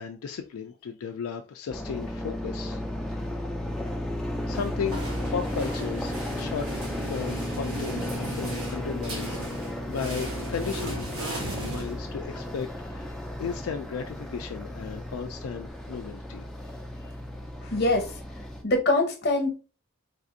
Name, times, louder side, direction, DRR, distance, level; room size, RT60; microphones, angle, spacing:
voice 1, 0.0-2.8 3.1-3.4 4.5-6.7 7.1-11.1 11.6-16.4 17.0-17.1, left 6 dB, 80° left, 0.3 m, -35 dB
sound 1, 1.7-18.6, left 1 dB, ahead, 0.3 m, -34 dB
sound 2, 4.5-12.5, right 1 dB, 85° right, 1.1 m, -38 dB
voice 2, 17.6-18.1 18.6-19.6, left 2 dB, 50° left, 0.8 m, -24 dB
3.5 x 2.4 x 2.6 m
head